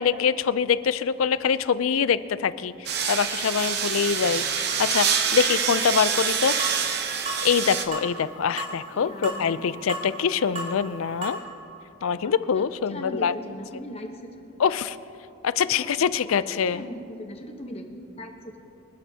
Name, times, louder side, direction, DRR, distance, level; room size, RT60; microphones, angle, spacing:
voice 1, 0.0-6.6 7.4-11.4 12.0-13.3 14.6-15.0 15.4-16.8, left 7 dB, 80° left, 15 dB, 0.4 m, -24 dB
sound 1, 2.9-7.9, right 7 dB, 50° right, 0.8 m, -26 dB
sound 2, 6.6-6.8 7.3-7.4 7.9-8.1 8.6-8.8 9.2-9.4 9.9-10.1 10.6-10.7 11.2-11.4, right 2 dB, 30° right, 3.3 m, -32 dB
voice 2, 8.9-9.8 12.1-14.3 15.7-15.9 16.2-17.9 18.2-18.7, equal, 30° left, 3 dB, 1.0 m, -39 dB
25.5 x 12.0 x 2.8 m, 2.8 s
head